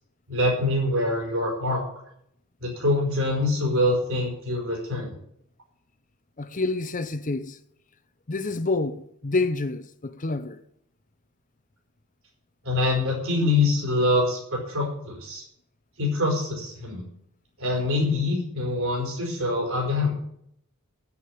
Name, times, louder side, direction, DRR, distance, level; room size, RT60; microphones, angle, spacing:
voice 1, 0.3-1.8 2.6-5.1 12.6-15.4 16.0-17.0 17.6-20.1, left 2 dB, 65° right, 4.9 m, -24 dB
voice 2, 6.4-7.6 8.3-10.6, left 3 dB, 35° left, 0.7 m, -28 dB
9.9 x 8.6 x 8.7 m
head